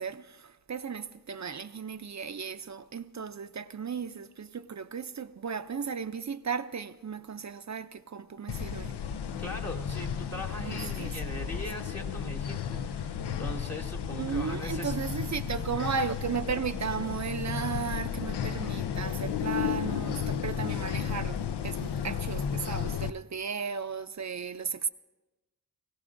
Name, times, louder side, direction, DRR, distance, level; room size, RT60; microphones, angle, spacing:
voice 1, 0.0-8.9 10.7-11.1 14.2-24.9, right 6 dB, 45° right, 0.5 m, -35 dB
sound 1, 8.5-23.1, left 8 dB, 80° left, 0.6 m, -33 dB
voice 2, 9.4-15.0, left 1 dB, 40° left, 1.3 m, -40 dB
21.0 x 16.5 x 2.6 m
wide cardioid pair, 60°, 40 cm